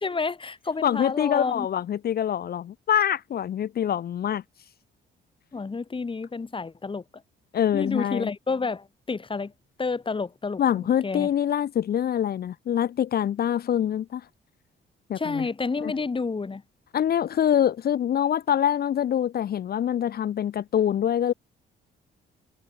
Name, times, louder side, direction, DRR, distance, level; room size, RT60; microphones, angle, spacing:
voice 1, 0.0-1.7 5.5-7.0 7.7-9.5 9.8-11.3 15.2-16.6, left 4 dB, 25° left, 1.6 m, -30 dB
voice 2, 0.8-4.4 7.5-8.3 10.6-14.2 15.1-15.4 15.8-15.9 16.9-21.3, left 10 dB, 50° left, 0.6 m, -25 dB
cardioid pair, 90°, 20 cm